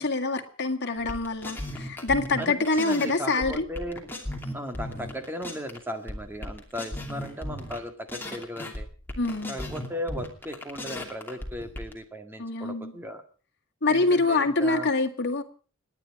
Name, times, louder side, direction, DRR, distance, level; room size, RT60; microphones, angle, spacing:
voice 1, 0.0-3.7 9.2-9.6 12.4-12.9 13.8-15.4, left 3 dB, 55° left, 4 dB, 2.0 m, -25 dB
sound 1, 1.0-3.1 3.4-5.8 6.1-7.8 8.1-11.9, left 1 dB, 10° left, 2.7 m, -36 dB
voice 2, 2.4-4.1 4.5-8.9 9.5-13.2 13.9-14.9, equal, 10° right, 7 dB, 1.9 m, -36 dB
30.0 x 10.0 x 4.8 m, 0.40 s
head